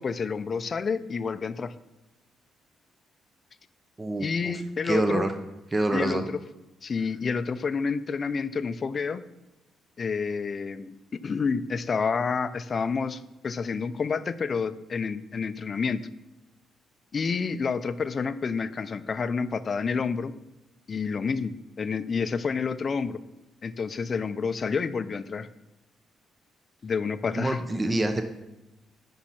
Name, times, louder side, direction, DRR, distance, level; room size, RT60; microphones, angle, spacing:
voice 1, 0.0-1.7 4.2-5.3 5.9-6.4 6.8-9.2 10.0-16.0 17.1-20.3 20.9-23.2 23.6-25.5 26.8-27.6, left 5 dB, 40° left, 13 dB, 0.5 m, -29 dB
voice 2, 4.0-4.5 4.8-5.3 5.7-6.3 27.4-28.2, right 2 dB, 20° right, 7 dB, 0.7 m, -26 dB
8.7 x 5.6 x 5.8 m, 1.0 s
cardioid pair, 90°, 0 cm